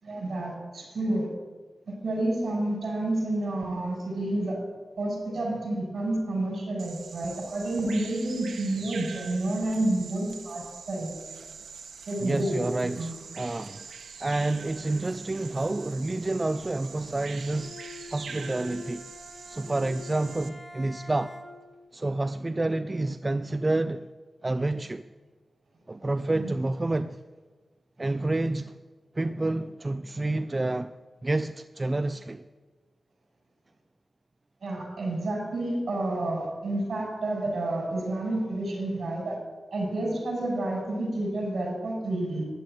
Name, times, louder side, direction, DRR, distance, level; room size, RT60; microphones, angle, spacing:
voice 1, 0.0-1.3 1.9-4.6 5.0-11.1 12.1-13.2 26.4-26.5 34.6-39.4 39.7-42.4, right 1 dB, 55° right, 6.3 m, -29 dB
Bird vocalization bird call bird song, 6.8-20.5, right 5 dB, 90° right, 1.4 m, -44 dB
voice 2, 12.2-13.9 14.2-17.8 18.1-19.0 19.5-21.4 21.9-24.1 24.4-25.0 25.9-27.2 28.0-28.8 29.1-31.0 31.2-32.4, right 2 dB, 20° right, 0.4 m, -29 dB
Bowed string instrument, 17.4-21.8, left 2 dB, 5° left, 1.9 m, -45 dB
14.5 x 10.5 x 9.2 m
wide cardioid pair, 155°, 0 cm